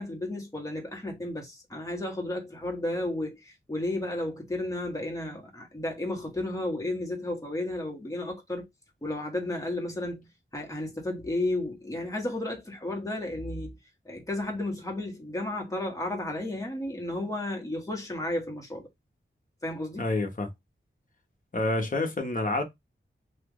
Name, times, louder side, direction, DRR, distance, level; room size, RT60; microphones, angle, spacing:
voice 1, 0.0-8.7 9.0-10.3 10.5-13.8 14.0-18.9 19.6-20.1, left 1 dB, 15° left, 1.2 m, -33 dB
voice 2, 20.0-20.5 21.5-22.6, left 2 dB, 40° left, 1.0 m, -28 dB
3.0 x 2.4 x 3.7 m
wide cardioid pair, 100°, 21 cm